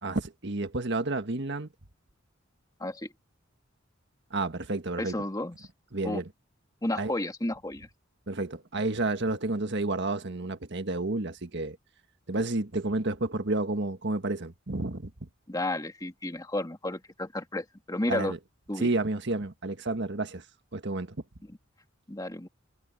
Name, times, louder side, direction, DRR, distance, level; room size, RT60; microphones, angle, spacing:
voice 1, 0.0-1.7 4.3-5.2 5.9-6.3 6.9-7.1 8.3-11.8 12.3-15.1 18.1-18.4 18.8-20.4 20.7-21.2, right 2 dB, 60° right, 1.6 m, -30 dB
voice 2, 5.0-5.7 6.0-6.2 6.8-7.9 15.5-18.3 18.7-18.9 21.5-21.6 22.1-22.5, left 1 dB, 20° left, 2.3 m, -32 dB
head